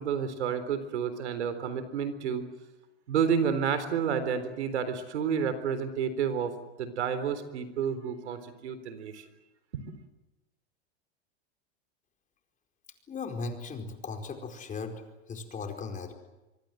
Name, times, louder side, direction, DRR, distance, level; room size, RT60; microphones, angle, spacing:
voice 1, 0.0-2.4 3.1-6.5 6.8-9.1, right 7 dB, 90° right, 11 dB, 3.9 m, -30 dB
voice 2, 13.1-15.0 15.3-16.1, left 4 dB, 25° left, 4 dB, 4.6 m, -37 dB
25.0 x 24.5 x 7.9 m, 1.0 s
supercardioid pair, 125°, 33 cm